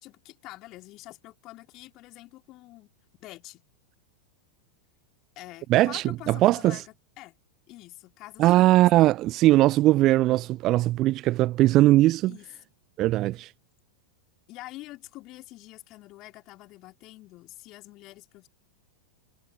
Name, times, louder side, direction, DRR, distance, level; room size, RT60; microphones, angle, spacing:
voice 1, 0.0-2.9 3.2-3.6 5.4-6.9 7.2-7.3 7.7-8.9 12.3-12.5 14.5-18.5, left 18 dB, 40° left, 2.8 m, -46 dB
voice 2, 5.7-6.8 8.4-12.4 13.0-13.5, right 16 dB, 35° right, 0.7 m, -20 dB
figure-of-eight pair, 90°, 0 cm